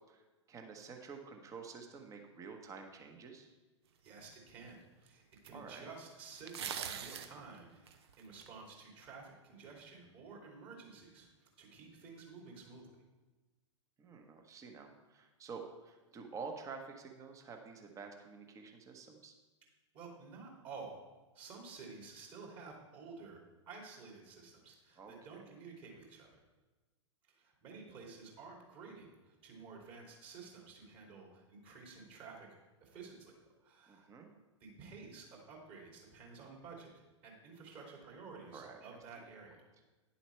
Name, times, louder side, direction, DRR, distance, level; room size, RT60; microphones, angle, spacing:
voice 1, 0.1-3.5 5.5-5.9 14.0-19.3 25.0-25.1 33.9-34.3 38.5-38.8, right 5 dB, 20° right, 4 dB, 1.1 m, -49 dB
voice 2, 4.0-13.0 19.9-21.0 21.3-23.4 23.7-26.3 27.3-32.5 32.8-34.1 34.6-36.9 37.2-39.7, right 4 dB, 35° right, -1 dB, 2.8 m, -52 dB
sound 1, 4.3-4.4 5.5-5.6 6.4-7.3 7.9-8.5, right 8 dB, 55° right, 0.8 m, -41 dB
10.0 x 7.1 x 4.5 m, 1.2 s
figure-of-eight pair, 105°, 16 cm